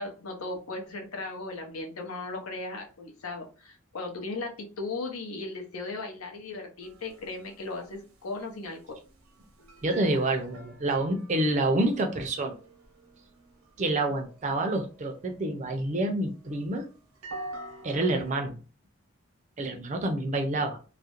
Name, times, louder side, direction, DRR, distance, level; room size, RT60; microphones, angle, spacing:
voice 1, 0.0-8.8, left 3 dB, 85° left, 2 dB, 0.7 m, -37 dB
sound 1, 6.8-18.3, right 2 dB, 85° right, 0.7 m, -48 dB
voice 2, 9.8-12.6 13.8-16.9 17.8-18.6 19.6-20.8, right 2 dB, 35° right, 5 dB, 0.4 m, -28 dB
2.4 x 2.0 x 2.8 m, 0.36 s
head